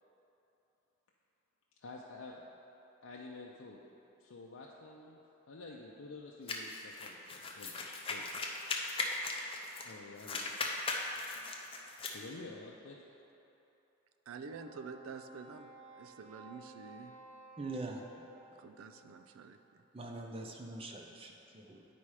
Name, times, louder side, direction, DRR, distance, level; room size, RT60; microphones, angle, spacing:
voice 1, 1.8-2.5 3.0-3.8 4.2-5.2 5.5-8.2 9.8-10.5 12.1-13.0, left 3 dB, 80° left, -3 dB, 0.5 m, -49 dB
sound 1, 6.5-9.9 10.2-12.2, left 3 dB, 25° left, 0.6 m, -38 dB
voice 2, 14.3-17.2 18.6-19.8, right 5 dB, 85° right, 7 dB, 0.4 m, -48 dB
Wind instrument woodwind instrument, 14.5-19.0, right 1 dB, 5° left, 1.7 m, -56 dB
voice 3, 17.6-18.0 19.9-21.8, right 2 dB, 25° right, 2 dB, 0.6 m, -43 dB
9.8 x 4.2 x 4.8 m, 3.0 s
head